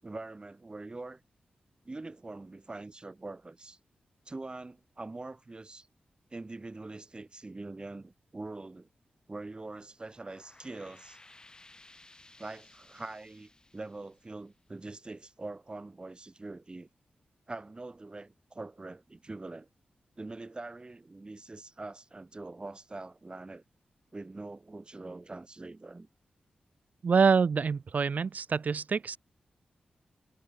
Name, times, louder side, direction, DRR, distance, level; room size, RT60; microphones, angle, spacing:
voice 1, 0.0-1.2 1.8-3.8 4.3-5.9 6.3-8.9 9.3-11.2 12.4-16.9 17.5-19.7 20.2-23.6 24.1-26.1, right 2 dB, 30° right, 7.5 m, -43 dB
sound 1, 9.9-15.2, left 2 dB, 25° left, 6.3 m, -58 dB
voice 2, 27.0-29.2, right 5 dB, 60° right, 0.8 m, -26 dB
cardioid pair, 60°, 3 cm